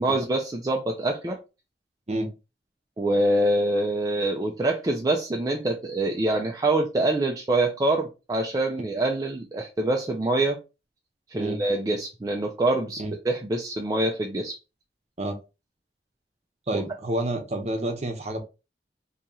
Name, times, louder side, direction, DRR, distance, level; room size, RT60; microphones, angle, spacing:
voice 1, 0.0-1.4 3.0-10.6 11.3-14.6 16.7-16.8, right 2 dB, 20° right, 0 dB, 0.4 m, -25 dB
voice 2, 16.7-18.4, right 1 dB, 40° right, 4 dB, 0.8 m, -29 dB
2.8 x 2.7 x 3.6 m, 0.29 s
head